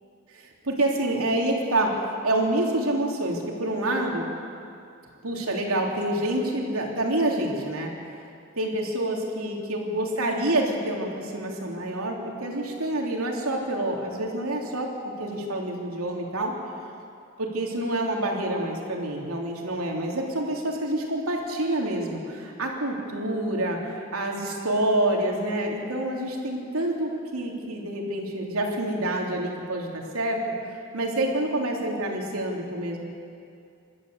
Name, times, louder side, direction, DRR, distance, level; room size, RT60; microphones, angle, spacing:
voice 1, 0.3-4.3 5.2-7.9 8.6-16.5 17.4-30.4 30.9-33.0, right 1 dB, 80° right, 0 dB, 3.2 m, -27 dB
27.0 x 12.5 x 8.0 m, 2.5 s
head